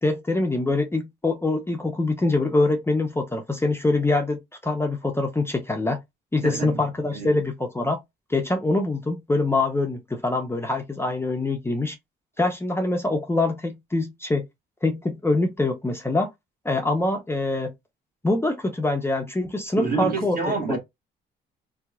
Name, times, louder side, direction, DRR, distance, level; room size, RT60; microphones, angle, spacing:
voice 1, 0.0-6.0 6.3-8.0 8.3-12.0 12.4-14.4 14.8-16.3 16.6-17.7 18.2-20.8, left 2 dB, 10° left, 0.5 m, -24 dB
voice 2, 6.4-6.8 7.1-7.5 19.8-20.8, right 4 dB, 45° right, 1.2 m, -28 dB
3.2 x 2.9 x 2.3 m
cardioid pair, 90°, 20 cm